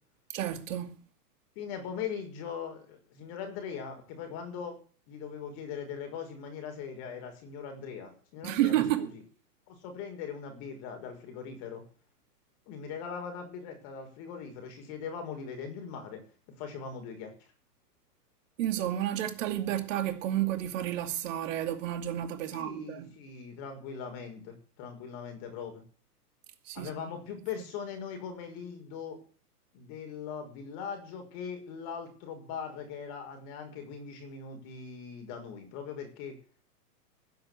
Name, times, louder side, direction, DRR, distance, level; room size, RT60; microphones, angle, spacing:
voice 1, 0.3-1.0 8.4-9.1 18.6-23.2 26.7-26.9, right 12 dB, 50° right, 2.5 m, -31 dB
voice 2, 1.6-4.8 5.1-9.2 9.7-11.8 12.7-16.2 16.6-17.3 22.5-25.8 26.7-29.2 29.7-36.4, left 6 dB, 40° left, 6.0 m, -40 dB
15.5 x 8.0 x 8.4 m
hypercardioid pair, 130°, 48 cm